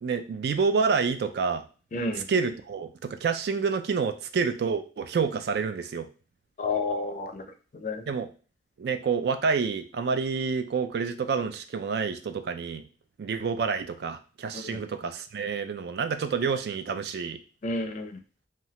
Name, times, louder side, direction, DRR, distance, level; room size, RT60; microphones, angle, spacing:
voice 1, 0.0-1.6 2.1-6.1 8.1-8.3 8.8-12.8 13.2-17.4, right 5 dB, 60° right, 9 dB, 0.3 m, -28 dB
voice 2, 1.9-2.2 6.6-7.4 7.8-8.0 14.6-14.8 17.6-18.1, left 3 dB, 45° left, 5 dB, 0.4 m, -30 dB
3.0 x 2.3 x 2.8 m, 0.37 s
head